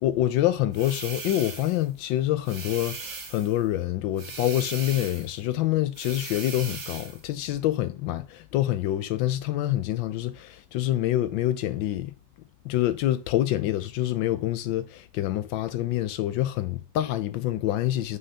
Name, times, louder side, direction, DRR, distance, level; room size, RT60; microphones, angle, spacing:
voice 1, 0.0-12.1 12.6-18.2, left 13 dB, 75° left, 1.3 m, -26 dB
sound 1, 0.7-1.8 2.4-3.6 4.2-5.3 5.9-7.2, right 4 dB, 70° right, 2.6 m, -38 dB
6.5 x 5.6 x 2.8 m
omnidirectional pair, 2.2 m